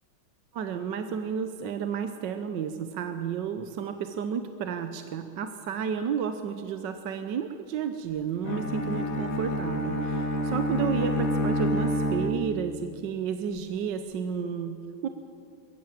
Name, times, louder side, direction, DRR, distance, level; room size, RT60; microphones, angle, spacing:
voice 1, 0.5-15.1, right 7 dB, 65° right, 8 dB, 1.4 m, -32 dB
Bowed string instrument, 8.4-12.9, equal, 45° left, 1.6 m, -28 dB
21.5 x 15.0 x 9.0 m, 2.4 s
omnidirectional pair, 2.2 m